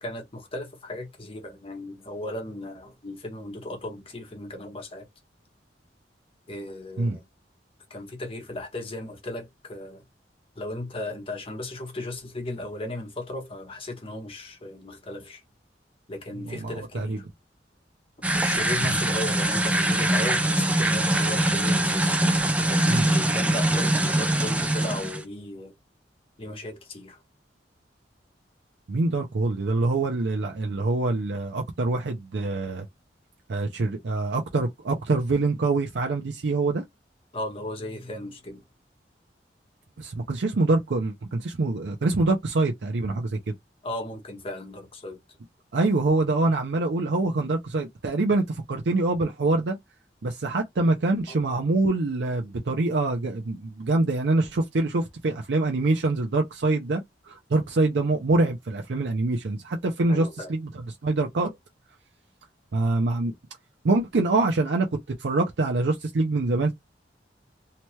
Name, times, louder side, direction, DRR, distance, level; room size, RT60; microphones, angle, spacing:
voice 1, 0.0-5.1 6.5-7.2 7.9-10.0 10.6-15.4 16.1-17.2 18.3-22.2 22.7-25.7 26.4-27.2 37.3-38.6 43.8-45.2 51.3-51.6 60.1-60.5, left 1 dB, 30° left, 1.0 m, -36 dB
voice 2, 16.4-17.2 18.8-19.0 22.9-23.1 28.9-32.9 33.5-36.8 40.0-43.5 45.7-49.8 50.2-60.7 61.0-61.6 62.7-63.3 63.8-64.9 65.2-66.7, right 2 dB, 70° right, 0.5 m, -25 dB
sound 1, 18.2-25.2, right 1 dB, 10° right, 0.4 m, -23 dB
2.9 x 2.2 x 3.1 m
head